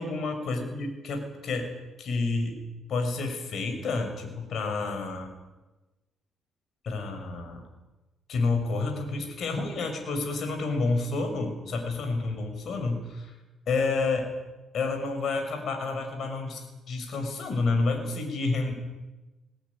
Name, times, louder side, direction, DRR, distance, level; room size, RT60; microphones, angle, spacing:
voice 1, 0.0-1.7 2.0-2.5 2.9-5.3 6.8-7.6 8.3-13.3 13.7-14.3 14.7-18.7, left 3 dB, 65° left, 5 dB, 6.5 m, -29 dB
21.0 x 17.5 x 10.0 m, 1.1 s
cardioid pair, 90°, 0 cm